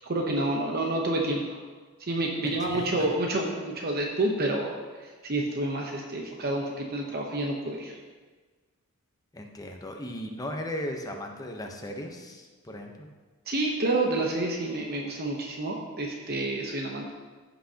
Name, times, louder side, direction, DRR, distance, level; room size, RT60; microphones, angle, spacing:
voice 1, 0.0-1.6 2.0-8.0 13.5-17.1, right 2 dB, 45° right, 0 dB, 0.9 m, -29 dB
voice 2, 2.4-3.1 9.3-13.1, left 1 dB, 15° left, 2 dB, 0.8 m, -37 dB
15.0 x 5.8 x 2.9 m, 1.4 s
head